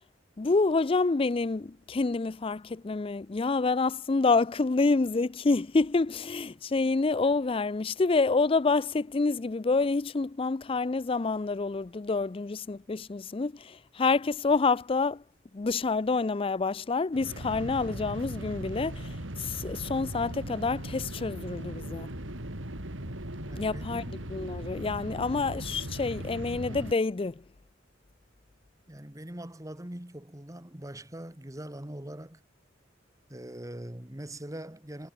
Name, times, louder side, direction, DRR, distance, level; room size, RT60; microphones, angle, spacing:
voice 1, 0.4-15.2 15.5-22.1 23.6-27.4, left 3 dB, 30° left, 0.4 m, -28 dB
Jet Engine, 17.1-26.9, right 1 dB, 90° right, 3.9 m, -38 dB
voice 2, 23.4-24.1 28.9-32.4 33.3-35.1, right 1 dB, 15° right, 1.7 m, -42 dB
head